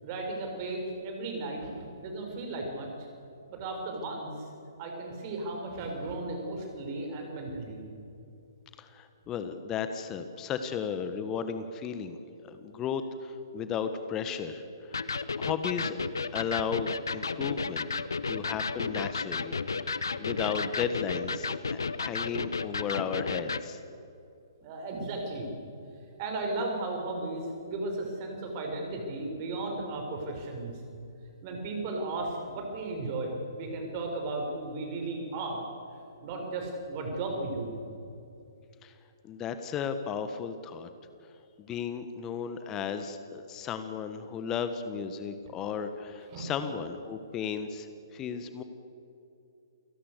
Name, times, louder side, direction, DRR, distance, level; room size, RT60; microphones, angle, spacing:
voice 1, 0.0-2.9 3.5-4.3 4.8-7.8 24.6-25.5 26.2-30.8 31.4-35.6 36.2-37.7 46.3-46.5, right 2 dB, 35° right, 2 dB, 6.6 m, -35 dB
voice 2, 8.8-12.2 12.4-15.0 15.4-16.0 16.3-23.8 38.8-39.0 39.2-40.9 41.6-48.6, left 7 dB, 20° left, 9 dB, 1.4 m, -35 dB
Electric guitar, 14.9-23.7, left 4 dB, 75° left, 1.0 m, -33 dB
29.0 x 18.0 x 6.9 m, 2.7 s
figure-of-eight pair, 125°, 2 cm